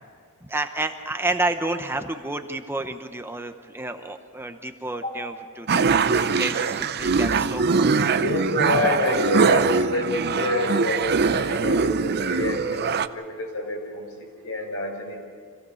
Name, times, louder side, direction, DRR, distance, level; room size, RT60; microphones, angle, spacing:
voice 1, 0.4-6.0 6.3-8.2, right 2 dB, 10° right, 6 dB, 0.8 m, -30 dB
sound 1, 5.7-13.1, right 5 dB, 50° right, 0.6 m, -22 dB
voice 2, 8.2-14.1 14.4-15.2, left 2 dB, 70° left, 1 dB, 5.1 m, -27 dB
26.0 x 16.0 x 7.1 m, 2.1 s
head